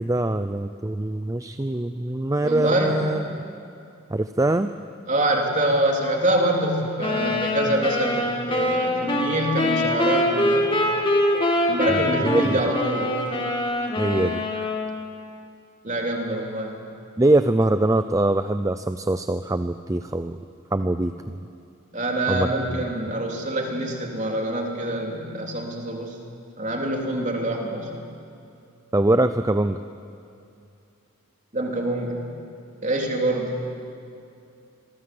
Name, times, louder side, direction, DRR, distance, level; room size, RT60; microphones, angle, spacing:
voice 1, 0.0-3.4 4.1-4.7 7.1-7.3 11.9-12.6 14.0-14.4 17.2-20.4 20.7-21.4 22.3-22.8 28.9-29.8, right 1 dB, 15° right, 10 dB, 0.5 m, -23 dB
voice 2, 2.4-3.1 5.1-10.8 11.7-13.2 15.8-16.8 21.9-26.2 26.6-27.9 31.5-32.3 32.8-33.6, right 1 dB, 35° right, 1 dB, 3.4 m, -25 dB
sound 1, 7.0-15.0, left 1 dB, 25° left, 2.6 m, -24 dB
27.0 x 23.0 x 7.8 m, 2.6 s
head